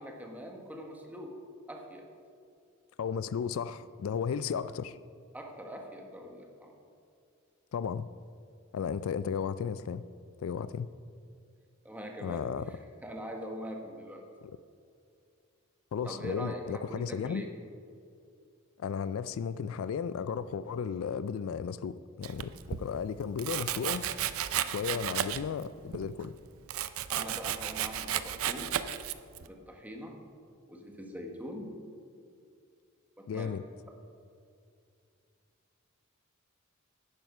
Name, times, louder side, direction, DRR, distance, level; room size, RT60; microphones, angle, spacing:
voice 1, 0.0-1.3 1.7-2.1 5.3-6.7 11.8-14.2 16.0-17.5 24.9-25.1 27.1-28.8 29.4-30.2 30.7-31.7 33.2-33.5, equal, 10° right, 1 dB, 1.3 m, -42 dB
voice 2, 3.0-5.0 7.7-8.1 8.7-10.0 10.4-10.9 12.2-12.7 14.4-14.6 15.9-17.4 18.8-24.1 24.6-26.3 33.3-33.6, left 6 dB, 70° left, 15 dB, 0.3 m, -34 dB
Domestic sounds home sounds, 22.2-22.8 23.4-25.6 25.9-29.5, right 10 dB, 85° right, 0.5 m, -33 dB
10.5 x 9.2 x 5.4 m, 2.4 s
head